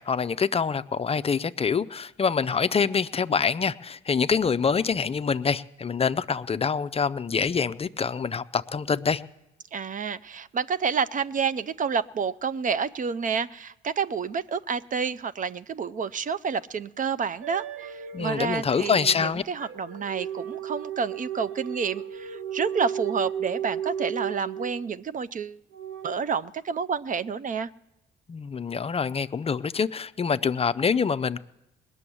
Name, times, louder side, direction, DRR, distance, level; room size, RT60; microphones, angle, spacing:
voice 1, 0.0-9.2 18.1-19.4 28.3-31.4, left 6 dB, 30° left, 0.4 m, -25 dB
voice 2, 9.7-25.6 26.0-27.7, right 6 dB, 40° right, 0.5 m, -29 dB
sound 1, 17.4-25.0 25.7-26.2, right 8 dB, 85° right, 1.1 m, -34 dB
20.0 x 7.0 x 9.9 m
cardioid pair, 90°, 20 cm